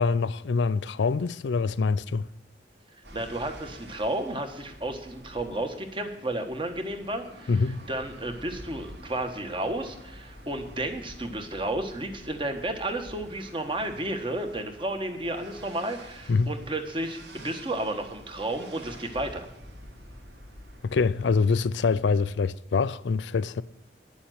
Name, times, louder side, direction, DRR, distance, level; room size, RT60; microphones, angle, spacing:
voice 1, 0.0-2.3 7.5-7.9 16.3-16.5 20.8-23.6, left 4 dB, 90° left, 0.4 m, -25 dB
sound 1, 3.0-21.3, equal, 75° right, 2.2 m, -48 dB
voice 2, 3.1-19.5, right 1 dB, 30° right, 1.4 m, -32 dB
10.0 x 7.1 x 9.3 m
head